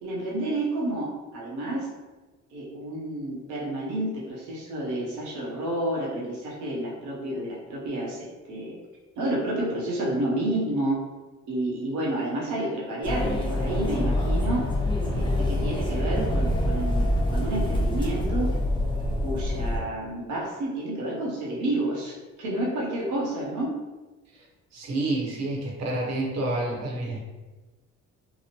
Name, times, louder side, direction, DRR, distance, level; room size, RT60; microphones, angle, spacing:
voice 1, 0.0-1.9 2.5-8.8 9.2-11.0 11.5-14.7 15.1-18.5 19.2-23.7, right 1 dB, 90° right, -3 dB, 0.8 m, -30 dB
sound 1, 13.0-19.8, left 1 dB, 15° left, 0.6 m, -25 dB
voice 2, 24.7-27.2, right 2 dB, 60° right, -2 dB, 0.9 m, -29 dB
2.9 x 2.0 x 2.8 m, 1.2 s
cardioid pair, 90°, 30 cm